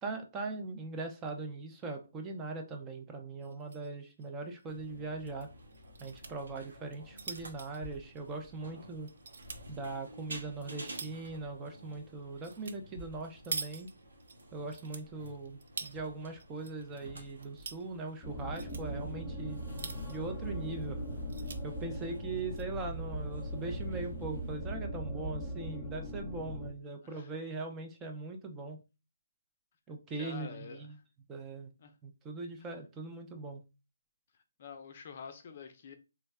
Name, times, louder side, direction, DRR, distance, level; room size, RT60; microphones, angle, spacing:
voice 1, 0.0-5.5 6.0-9.1 9.7-13.9 14.5-19.6 20.1-21.0 21.6-28.8 29.9-31.0 31.3-31.7 32.0-33.6, right 3 dB, 15° right, 0.5 m, -40 dB
sound 1, 3.4-3.9 4.2-4.3 4.6-4.7 5.7-6.3 6.8-8.7 9.1-9.6 10.2-11.3 12.4-12.8 13.0-14.3 14.7-16.0 16.4-17.0 17.3-17.8 18.4-18.8 19.6-20.3 20.7-20.8 21.1-21.6 22.3-22.6, right 4 dB, 65° right, 0.5 m, -44 dB
sound 2, 4.7-24.6, right 1 dB, 85° right, 1.4 m, -52 dB
sound 3, 18.2-26.7, equal, 5° left, 1.0 m, -39 dB
voice 2, 19.7-20.0 27.0-27.3 30.1-31.0 31.8-31.9 32.6-32.7 34.6-35.9, left 6 dB, 45° left, 0.5 m, -48 dB
3.4 x 2.2 x 3.2 m
hypercardioid pair, 155°, 0 cm